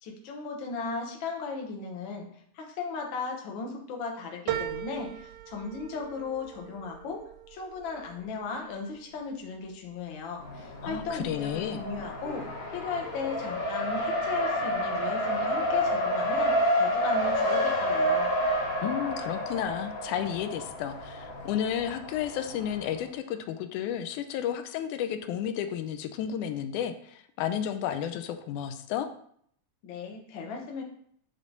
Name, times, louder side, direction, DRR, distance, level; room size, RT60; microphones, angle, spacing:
voice 1, 0.0-2.3 2.5-7.2 7.5-18.3 29.8-30.8, left 4 dB, 60° left, 1 dB, 1.4 m, -36 dB
sound 1, 4.5-9.2 9.7-10.4 10.8-10.9, right 12 dB, 85° right, 2.0 m, -39 dB
Race car auto racing, 10.4-23.0, equal, 35° left, 1.7 m, -29 dB
voice 2, 10.8-11.8 18.8-29.1, left 9 dB, 85° left, 8 dB, 2.1 m, -32 dB
9.0 x 3.2 x 3.9 m, 0.64 s
omnidirectional pair, 3.5 m